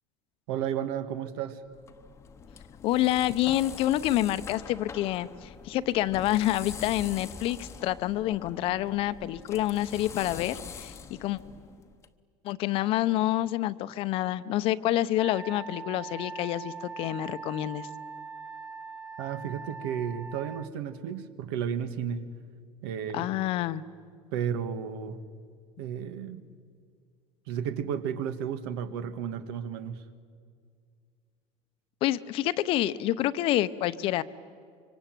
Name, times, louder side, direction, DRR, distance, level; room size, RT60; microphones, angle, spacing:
voice 1, 0.5-1.6 19.2-22.3 22.8-23.3 24.3-25.2 25.8-26.4 27.5-30.0, right 8 dB, 80° right, 11 dB, 1.8 m, -33 dB
sound 1, 1.7-12.1, left 6 dB, 20° left, 1.0 m, -44 dB
voice 2, 2.8-10.9 11.2-11.4 12.4-17.9 23.1-23.8 32.0-34.2, left 14 dB, 45° left, 14 dB, 0.8 m, -28 dB
Wind instrument woodwind instrument, 15.1-20.7, right 5 dB, 5° right, 0.8 m, -41 dB
25.5 x 24.5 x 9.1 m, 2.2 s
cardioid pair, 155°, 12 cm